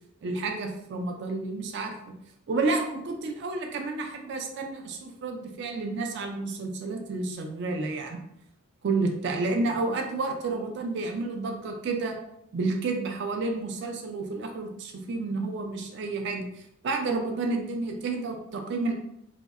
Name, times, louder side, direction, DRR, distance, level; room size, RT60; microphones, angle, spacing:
voice 1, 0.2-1.9 2.5-8.2 8.8-12.2 12.5-16.5 16.8-18.9, right 3 dB, 55° right, 3 dB, 0.3 m, -30 dB
2.6 x 2.0 x 2.3 m, 0.77 s
head